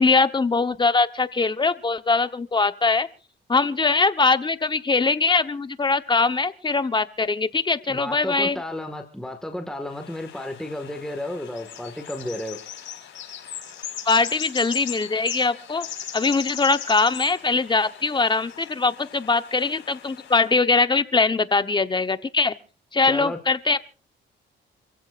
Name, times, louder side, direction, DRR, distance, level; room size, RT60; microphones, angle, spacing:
voice 1, 0.0-3.1 3.5-8.6 14.0-15.9 16.1-22.5 22.9-23.8, left 4 dB, 25° left, 11 dB, 1.1 m, -22 dB
voice 2, 7.9-12.6 23.0-23.4, left 1 dB, 5° left, 4 dB, 1.8 m, -32 dB
sound 1, 9.9-20.5, left 9 dB, 70° left, 5.3 m, -38 dB
28.0 x 15.5 x 2.5 m, 0.37 s
cardioid pair, 90°, 20 cm